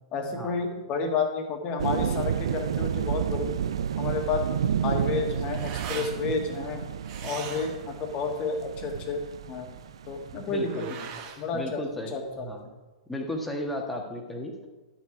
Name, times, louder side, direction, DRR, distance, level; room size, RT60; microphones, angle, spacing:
voice 1, 0.1-3.6 4.0-4.4 4.8-6.8 7.2-9.2 9.5-9.8 10.1-10.8 11.4-11.8 12.1-12.5, left 4 dB, 30° left, 3 dB, 1.7 m, -30 dB
sound 1, 1.8-10.7, right 8 dB, 60° right, 0.4 m, -31 dB
sound 2, 5.0-12.6, right 7 dB, 40° right, 1.2 m, -43 dB
voice 2, 10.5-10.9 11.5-12.7 13.1-14.7, left 1 dB, 5° left, 1 dB, 1.5 m, -34 dB
11.5 x 6.0 x 4.8 m, 1.2 s
figure-of-eight pair, 105°, 3 cm